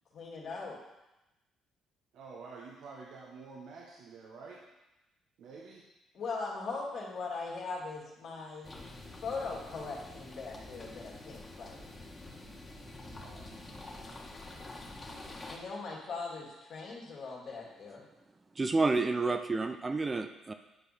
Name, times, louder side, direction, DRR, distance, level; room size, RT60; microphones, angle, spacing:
voice 1, 0.1-0.8 6.1-8.8 9.2-11.9 15.5-18.1, left 4 dB, 65° left, -3 dB, 2.6 m, -40 dB
voice 2, 2.1-4.6 5.4-5.8 13.2-14.0, right 4 dB, 70° right, -2 dB, 1.1 m, -49 dB
sound 1, 8.6-15.6, left 2 dB, 30° left, 1.8 m, -47 dB
voice 3, 18.6-20.5, right 3 dB, 30° right, 7 dB, 0.6 m, -29 dB
10.0 x 4.8 x 4.3 m, 0.99 s
hypercardioid pair, 55°, 0 cm